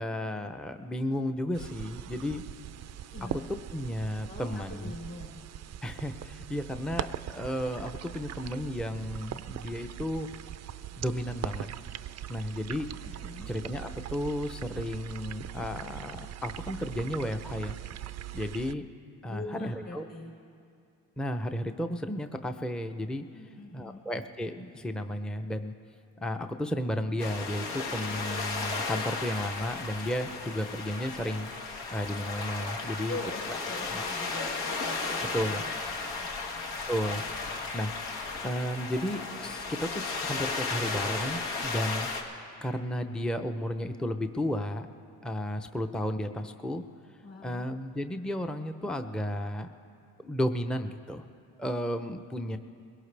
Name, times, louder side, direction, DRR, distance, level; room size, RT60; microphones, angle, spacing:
voice 1, 0.0-2.4 3.7-5.0 5.8-10.3 11.0-11.7 12.3-12.9 13.5-16.2 16.4-17.8 18.3-18.8 19.2-20.0 21.2-23.3 23.7-25.7 26.2-33.2 33.5-33.6 33.9-34.0 35.3-35.6 36.9-37.9 38.4-42.1 42.6-44.9 45.2-46.8 47.4-49.7 50.2-51.2 51.6-52.6, equal, ahead, 7 dB, 0.6 m, -33 dB
sound 1, 1.5-18.7, right 11 dB, 45° right, 0.5 m, -41 dB
voice 2, 3.1-3.5 4.0-5.4 13.0-13.5 19.3-20.3 23.3-24.0 33.0-33.4 33.7-35.7 36.0-36.3 47.2-47.6 52.2-52.4, left 2 dB, 40° left, -2 dB, 4.9 m, -43 dB
sound 2, 27.2-42.2, left 4 dB, 80° left, 1.7 m, -34 dB
21.5 x 17.0 x 3.4 m, 2.4 s
supercardioid pair, 75°, 39 cm